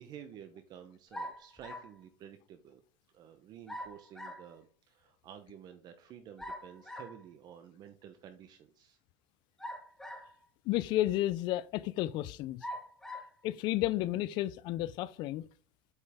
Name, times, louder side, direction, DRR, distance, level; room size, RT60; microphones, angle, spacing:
voice 1, 0.0-2.8 3.1-9.0, right 9 dB, 40° right, 0.9 m, -51 dB
sound 1, 1.1-2.0 3.7-4.5 6.4-7.2 9.6-10.5 11.2-11.3 12.6-13.3, equal, 5° left, 1.0 m, -43 dB
voice 2, 10.7-12.7 13.4-15.4, left 15 dB, 45° left, 0.4 m, -32 dB
8.0 x 5.4 x 3.5 m
supercardioid pair, 145°, 10 cm